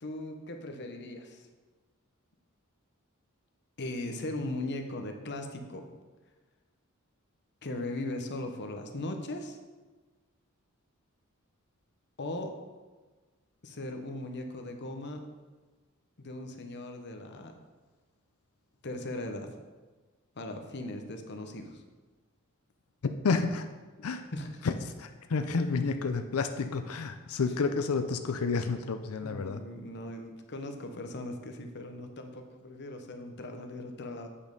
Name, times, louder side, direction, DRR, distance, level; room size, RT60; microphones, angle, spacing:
voice 1, 0.0-1.5 3.8-5.8 7.6-9.6 12.2-12.5 13.6-15.2 16.2-17.5 18.8-19.5 20.4-21.8 24.3-24.5 29.2-34.3, left 1 dB, 55° left, 5 dB, 0.9 m, -38 dB
voice 2, 23.0-23.7 24.0-24.3 24.6-29.6, left 4 dB, 85° left, 8 dB, 0.5 m, -30 dB
8.7 x 5.3 x 5.3 m, 1.3 s
head